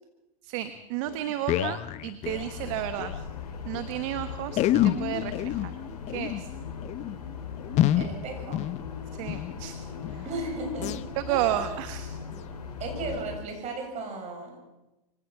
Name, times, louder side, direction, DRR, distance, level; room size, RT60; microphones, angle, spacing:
voice 1, 0.4-3.2 3.6-5.6 6.1-6.5 9.1-9.8 10.1-10.2 11.3-12.2, right 13 dB, 55° right, 10 dB, 1.3 m, -32 dB
sound 1, 0.7-0.8 1.1-3.2 3.5-3.6 3.7-3.9 4.5-9.6 10.0-10.3 10.8-11.0 11.5-11.8 12.3-12.4 13.1-13.2, left 12 dB, 35° left, 0.9 m, -29 dB
sound 2, 2.2-13.4, left 6 dB, 85° left, 4.6 m, -39 dB
voice 2, 8.0-8.6 10.2-10.9 11.2-11.8 12.8-14.6, right 2 dB, 35° right, 2 dB, 7.7 m, -35 dB
24.5 x 18.0 x 6.1 m, 0.99 s
hypercardioid pair, 110°, 20 cm